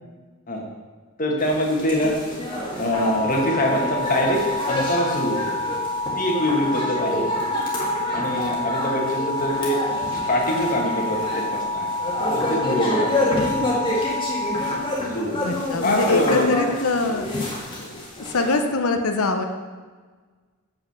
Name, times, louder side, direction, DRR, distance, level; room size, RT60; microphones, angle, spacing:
voice 1, 1.2-2.2 2.8-5.4 6.1-7.2 8.1-11.9 12.3-13.4 14.9-15.4 15.8-16.5, equal, 40° left, 0 dB, 1.4 m, -24 dB
sound 1, 1.4-18.6, left 1 dB, 20° left, 1.7 m, -28 dB
sound 2, 2.9-14.8, left 2 dB, 65° left, 1.4 m, -28 dB
voice 2, 15.4-17.3 17.8-19.4, left 3 dB, 85° left, 6 dB, 0.8 m, -23 dB
7.3 x 5.7 x 5.9 m, 1.4 s
head